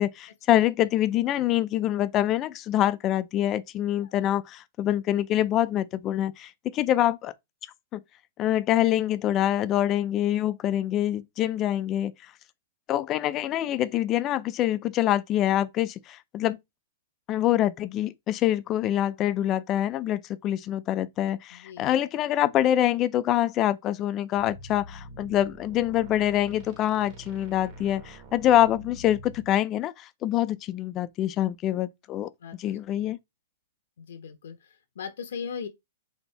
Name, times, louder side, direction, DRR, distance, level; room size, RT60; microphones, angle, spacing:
voice 1, 0.0-7.3 7.9-8.0 8.4-12.1 12.9-16.6 17.3-32.3 32.6-33.2, left 12 dB, 25° left, 0.3 m, -25 dB
voice 2, 21.5-22.0 32.4-32.8 34.0-35.7, left 6 dB, 80° left, 0.8 m, -39 dB
sound 1, 24.4-29.5, equal, 35° right, 1.2 m, -45 dB
4.2 x 2.7 x 3.2 m
hypercardioid pair, 155°, 0 cm